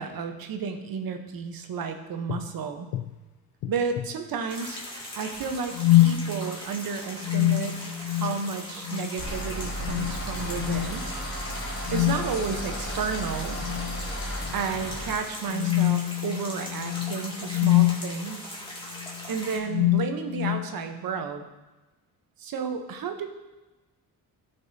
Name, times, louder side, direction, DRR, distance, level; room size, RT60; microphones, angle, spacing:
voice 1, 0.0-2.9 3.7-4.8 5.2-11.1 11.9-13.6 14.5-18.6 19.3-21.4 22.4-23.3, right 5 dB, 70° right, 6 dB, 1.0 m, -32 dB
sound 1, 2.3-2.5 2.9-3.1 3.6-4.1 5.7-6.3 7.2-8.5 8.8-9.1 9.8-10.2 10.6-10.9 11.9-12.4 13.6-14.0 14.5-14.6 15.5-18.1 19.0-19.2 19.7-20.7, left 17 dB, 75° left, 0.5 m, -25 dB
sound 2, 4.5-19.6, left 1 dB, 15° left, 2.3 m, -40 dB
sound 3, 9.2-15.1, equal, 50° left, 2.8 m, -34 dB
14.0 x 5.4 x 2.8 m, 1.1 s
cardioid pair, 85°, 36 cm